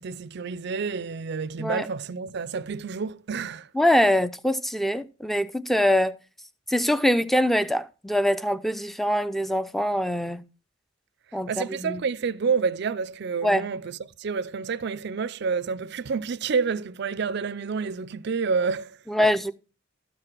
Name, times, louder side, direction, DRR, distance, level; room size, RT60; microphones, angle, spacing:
voice 1, 0.0-3.7 11.5-19.3, right 5 dB, 55° right, 0.5 m, -29 dB
voice 2, 3.7-6.2 6.7-10.4 11.3-12.0 13.4-13.6 19.1-19.5, left 1 dB, ahead, 0.5 m, -23 dB
13.0 x 4.9 x 6.0 m
head